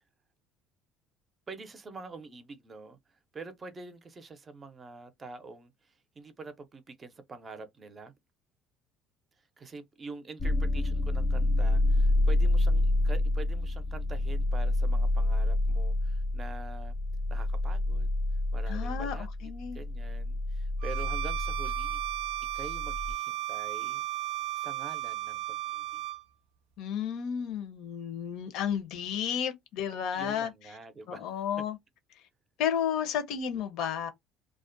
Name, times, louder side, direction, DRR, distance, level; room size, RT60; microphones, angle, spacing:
voice 1, 1.5-3.0 3.3-8.1 9.6-17.0 17.3-18.1 18.5-22.0 22.5-24.0 24.6-26.0 30.1-31.4, right 3 dB, 30° right, 0.5 m, -46 dB
sound 1, 10.4-23.1, left 1 dB, 30° left, 0.5 m, -28 dB
voice 2, 18.7-19.8 26.8-30.5 31.1-31.8 32.6-34.1, left 8 dB, 70° left, 0.6 m, -32 dB
Bowed string instrument, 20.8-26.2, right 14 dB, 90° right, 0.4 m, -34 dB
2.4 x 2.1 x 2.5 m
cardioid pair, 110°, 0 cm